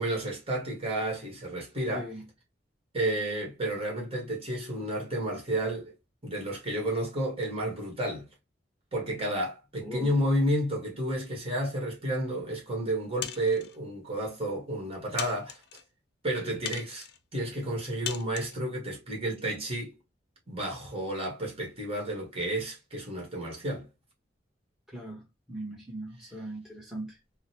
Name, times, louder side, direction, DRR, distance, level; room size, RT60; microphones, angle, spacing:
voice 1, 0.0-2.1 2.9-5.9 6.2-8.3 8.9-15.6 16.2-17.1 17.3-19.9 20.5-23.9, right 1 dB, 35° right, 1.5 m, -31 dB
voice 2, 9.8-10.1 24.9-27.2, right 1 dB, ahead, 1.2 m, -40 dB
sound 1, 13.2-13.8 14.5-14.6 15.2-15.8 16.7-17.2 18.1-18.6, left 9 dB, 65° left, 0.5 m, -38 dB
3.8 x 2.1 x 2.8 m
head